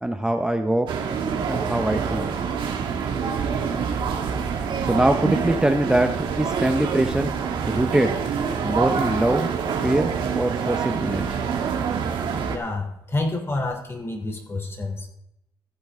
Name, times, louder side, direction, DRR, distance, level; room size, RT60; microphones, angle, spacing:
voice 1, 0.0-0.9 1.5-2.3 4.8-7.3 7.7-8.2 8.6-9.5 9.8-11.4, right 1 dB, 10° right, 5 dB, 0.8 m, -23 dB
sound 1, 0.9-12.6, right 6 dB, 80° right, 1.6 m, -26 dB
voice 2, 12.5-15.1, left 2 dB, 30° left, 3 dB, 3.2 m, -28 dB
15.0 x 8.4 x 3.6 m, 0.80 s
cardioid pair, 90°, 8 cm